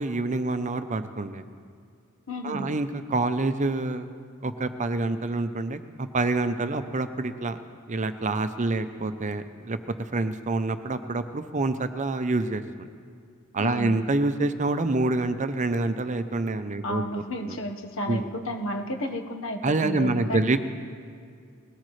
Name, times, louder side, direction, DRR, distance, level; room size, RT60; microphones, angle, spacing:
voice 1, 0.0-1.4 2.4-4.1 4.4-7.6 7.9-9.8 10.1-12.9 13.5-17.0 17.4-17.6 18.1-18.3 19.6-20.6, right 2 dB, 35° right, 10 dB, 0.7 m, -27 dB
voice 2, 2.3-2.7 13.6-14.0 16.8-20.6, equal, 65° left, 3 dB, 1.4 m, -32 dB
20.5 x 18.0 x 3.3 m, 2.2 s
head